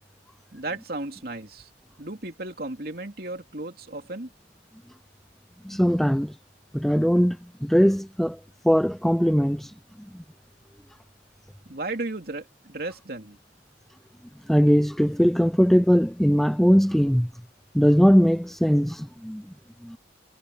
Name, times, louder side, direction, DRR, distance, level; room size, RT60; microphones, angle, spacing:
voice 1, 0.5-1.7 2.0-4.3 11.6-13.4, right 2 dB, 60° right, 2.8 m, -34 dB
voice 2, 5.6-6.3 6.7-8.4 8.6-9.7 10.1-10.2 14.5-17.3 17.7-19.4 19.8-20.0, equal, ahead, 0.5 m, -20 dB
head